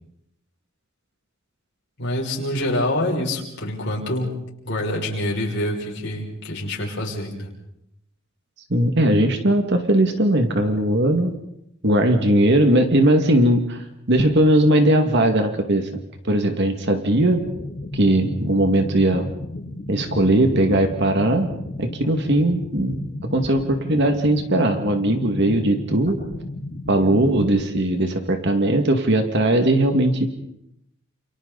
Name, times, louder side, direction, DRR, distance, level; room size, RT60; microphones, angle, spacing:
voice 1, 2.0-4.3 4.6-7.5, left 1 dB, 55° left, -3 dB, 6.3 m, -26 dB
voice 2, 8.7-11.3 11.8-15.9 16.2-17.4 17.9-19.3 19.9-21.5 21.8-22.9 23.3-26.2 26.9-30.3, right 1 dB, 55° right, 5 dB, 2.2 m, -19 dB
sound 1, 17.4-27.4, left 1 dB, 35° left, 6.4 m, -34 dB
29.5 x 29.0 x 4.2 m, 0.78 s
head